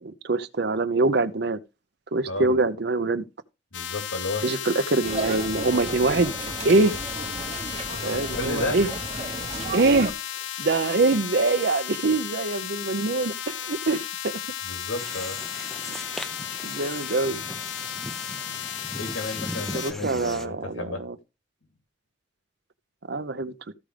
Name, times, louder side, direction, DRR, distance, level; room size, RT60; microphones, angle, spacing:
voice 1, 0.0-1.6 2.1-3.2 4.4-6.3 6.6-6.9 8.0-8.9 9.7-10.1 10.6-14.3 16.6-17.4 19.7-21.2 23.1-23.5, right 3 dB, 55° right, 0.6 m, -24 dB
voice 2, 2.3-2.6 3.7-4.4 7.9-8.8 14.6-15.4 18.9-21.0, left 2 dB, 90° left, 2.8 m, -33 dB
sound 1, 3.7-19.9, left 11 dB, 60° left, 0.6 m, -34 dB
sound 2, 5.0-10.1, right 3 dB, 30° right, 1.0 m, -34 dB
sound 3, 15.0-20.5, equal, ahead, 0.4 m, -39 dB
14.0 x 5.0 x 3.3 m
head